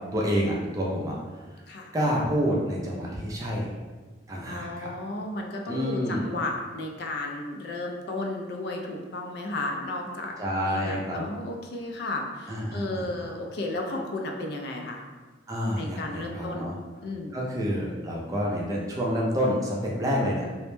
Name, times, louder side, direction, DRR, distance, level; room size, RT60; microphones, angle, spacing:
voice 1, 0.1-1.1 1.9-3.7 4.3-4.9 5.7-6.3 10.4-11.2 12.5-13.3 15.5-16.7 17.3-20.4, equal, 20° right, -3 dB, 0.3 m, -28 dB
voice 2, 4.5-10.4 10.6-15.0 15.8-16.7 17.0-17.4, left 2 dB, 60° left, 2 dB, 0.3 m, -33 dB
2.1 x 2.0 x 3.0 m, 1.3 s
head